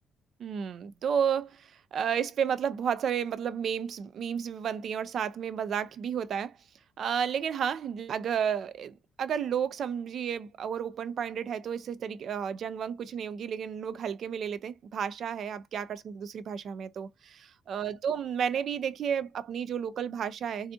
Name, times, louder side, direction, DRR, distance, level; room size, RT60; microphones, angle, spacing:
voice 1, 0.4-6.6 7.0-20.7, right 8 dB, 60° right, 0.3 m, -32 dB
2.6 x 2.4 x 2.3 m
cardioid pair, 90°, 0 cm